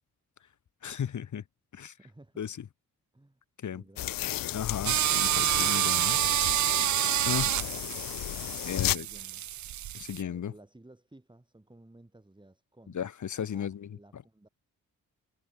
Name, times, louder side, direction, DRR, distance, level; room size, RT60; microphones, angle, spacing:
voice 1, 0.8-1.4 1.7-2.0 2.4-2.7 3.6-3.8 4.5-6.2 6.6-6.9 7.3-7.5 8.6-9.1 9.9-10.5 12.9-14.2, left 8 dB, 60° left, 1.6 m, -35 dB
voice 2, 2.0-2.4 3.1-3.4 3.7-4.8 6.9-7.9 8.7-9.5 10.2-13.0 13.5-14.5, right 1 dB, 15° right, 6.2 m, -55 dB
sound 1, 4.0-8.9, left 14 dB, 85° left, 0.7 m, -34 dB
sound 2, 4.9-10.2, right 12 dB, 60° right, 0.5 m, -28 dB
cardioid pair, 75°, 33 cm